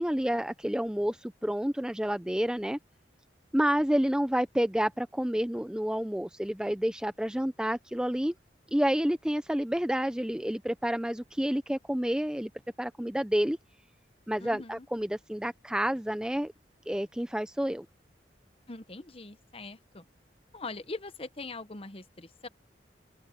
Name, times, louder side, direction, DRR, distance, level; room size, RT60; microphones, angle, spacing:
voice 1, 0.0-2.8 3.5-8.3 8.7-12.5 12.8-13.6 14.3-16.5 16.9-17.9, equal, 5° right, 0.5 m, -29 dB
voice 2, 14.4-14.9 18.7-20.0 20.5-22.5, left 3 dB, 30° left, 1.0 m, -42 dB
open air
head